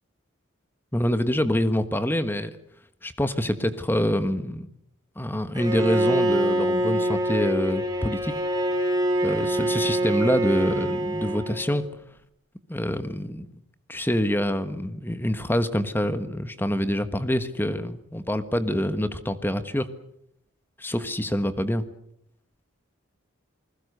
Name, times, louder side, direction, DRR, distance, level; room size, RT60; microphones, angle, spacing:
voice 1, 0.9-2.5 3.0-4.7 5.2-8.3 9.2-11.8 12.7-13.5 13.9-19.9 20.8-21.8, equal, 10° left, 11 dB, 1.3 m, -26 dB
Bowed string instrument, 5.5-11.8, right 1 dB, 20° right, 4.0 m, -25 dB
29.0 x 20.5 x 6.7 m, 0.72 s
head